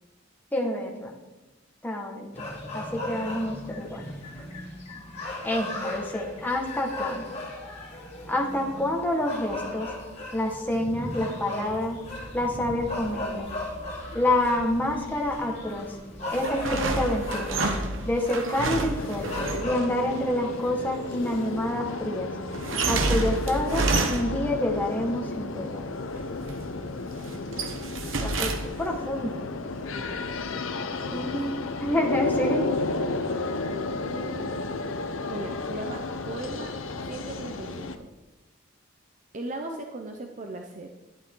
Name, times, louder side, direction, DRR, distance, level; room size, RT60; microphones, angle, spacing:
voice 1, 0.5-1.1 1.8-2.5 2.7-4.0 5.4-7.2 8.3-9.9 10.3-12.0 12.3-13.5 14.1-15.9 16.3-17.7 18.0-22.3 22.9-25.9 28.2-28.5 28.8-29.4 31.1-31.5 31.8-32.6 39.7-39.8, left 1 dB, 10° left, 0 dB, 1.6 m, -28 dB
sound 1, 2.3-21.4, left 1 dB, 35° left, 3.0 m, -37 dB
sound 2, 16.3-19.8 22.5-24.6 26.1-26.6 27.1-29.0, right 3 dB, 75° right, 1.1 m, -29 dB
sound 3, 19.0-38.0, left 3 dB, 80° left, 0.9 m, -33 dB
voice 2, 27.2-28.0 29.9-30.7 31.0-31.4 33.3-34.6 35.3-36.7 37.1-38.1 39.3-40.9, right 2 dB, 40° right, 3 dB, 0.7 m, -39 dB
11.5 x 11.0 x 3.8 m, 1.1 s
head